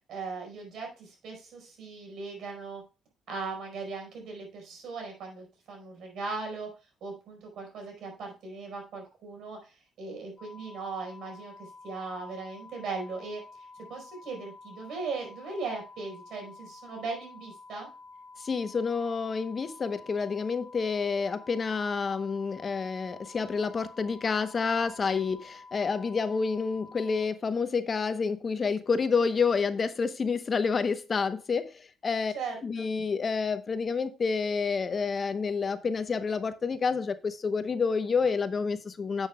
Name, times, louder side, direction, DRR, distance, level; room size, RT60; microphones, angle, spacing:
voice 1, 0.1-2.8 3.3-6.7 7.0-17.9 32.3-32.9, right 4 dB, 75° right, 2 dB, 4.7 m, -38 dB
sound 1, 10.4-27.2, left 3 dB, 15° left, 2.8 m, -50 dB
voice 2, 18.4-32.3 32.6-39.3, left 5 dB, 40° left, 11 dB, 0.8 m, -29 dB
10.5 x 7.3 x 2.2 m, 0.32 s
cardioid pair, 90°, 0 cm